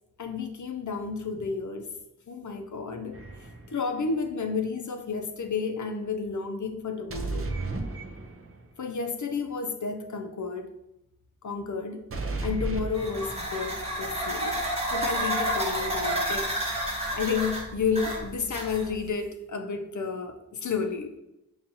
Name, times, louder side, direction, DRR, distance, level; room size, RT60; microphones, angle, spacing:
voice 1, 0.2-1.9 2.3-7.5 8.8-10.7 11.4-12.0 12.4-14.6 14.9-16.5 17.1-21.1, left 5 dB, 60° left, 5 dB, 0.5 m, -31 dB
sound 1, 3.1-3.8 7.1-8.7 12.1-13.7, right 2 dB, 40° right, 0.5 m, -34 dB
sound 2, 12.9-19.1, right 1 dB, 20° right, 1.0 m, -30 dB
5.3 x 2.4 x 2.8 m, 0.88 s
wide cardioid pair, 50°, 34 cm